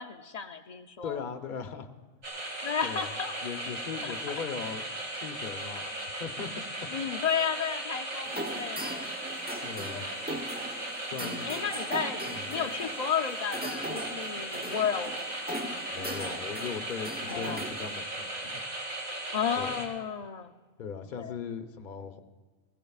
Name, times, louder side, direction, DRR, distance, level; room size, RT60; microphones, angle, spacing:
voice 1, 0.0-1.2 2.6-3.3 4.0-4.1 6.9-9.2 9.9-10.4 11.4-15.5 17.3-17.6 19.3-20.5 21.2-21.4, left 7 dB, 60° left, 5 dB, 0.4 m, -33 dB
voice 2, 1.0-1.9 2.8-3.2 3.4-6.6 9.6-10.1 11.1-11.5 12.3-12.6 15.9-18.5 19.6-19.8 20.8-22.2, left 6 dB, 45° left, 6 dB, 0.8 m, -39 dB
sound 1, 2.2-19.9, right 1 dB, 80° right, 2.6 m, -37 dB
sound 2, 8.2-18.0, right 1 dB, 10° right, 0.5 m, -40 dB
21.0 x 16.0 x 2.4 m, 1.4 s
omnidirectional pair, 1.4 m